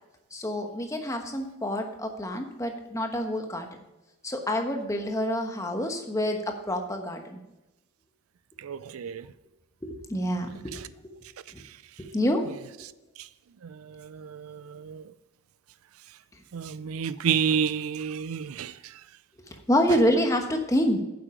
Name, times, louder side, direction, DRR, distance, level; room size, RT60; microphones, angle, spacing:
voice 1, 0.3-3.7 4.2-7.4 9.8-10.9 12.0-12.4 19.7-21.0, equal, 15° left, 1.1 m, -27 dB
voice 2, 8.6-9.2 14.1-15.0 16.5-18.7, right 7 dB, 75° right, 0.4 m, -29 dB
9.8 x 7.5 x 4.9 m
head